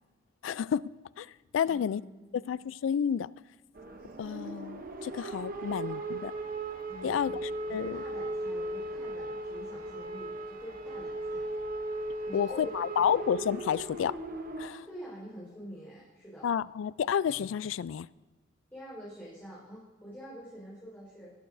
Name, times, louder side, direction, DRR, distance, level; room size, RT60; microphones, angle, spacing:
voice 1, 0.4-0.9 1.2-1.3 1.5-2.0 2.3-3.3 4.2-6.3 7.0-8.0 12.3-14.2 14.6-14.8 16.4-18.1, left 8 dB, 85° left, 0.3 m, -30 dB
voice 2, 1.6-2.4 5.5-5.9 6.9-11.5 12.3-13.2 14.7-16.5 18.7-21.3, equal, 10° left, 4.3 m, -46 dB
sound 1, 3.8-14.7, right 2 dB, 50° right, 0.8 m, -37 dB
19.5 x 11.5 x 2.6 m
head